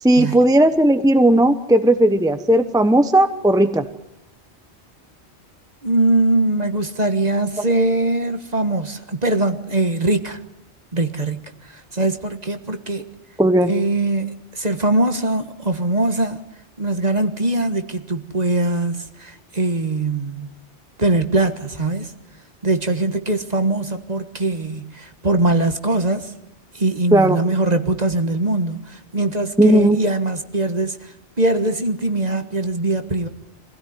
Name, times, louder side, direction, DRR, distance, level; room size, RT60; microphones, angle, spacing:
voice 1, 0.0-3.9 13.4-13.7 27.1-27.4 29.6-30.0, right 1 dB, 5° right, 1.0 m, -15 dB
voice 2, 5.8-10.4 10.9-13.1 13.7-16.4 16.8-20.5 21.0-22.1 22.6-26.3 26.7-33.3, right 2 dB, 35° right, 1.6 m, -22 dB
25.5 x 16.5 x 9.7 m
omnidirectional pair, 1.2 m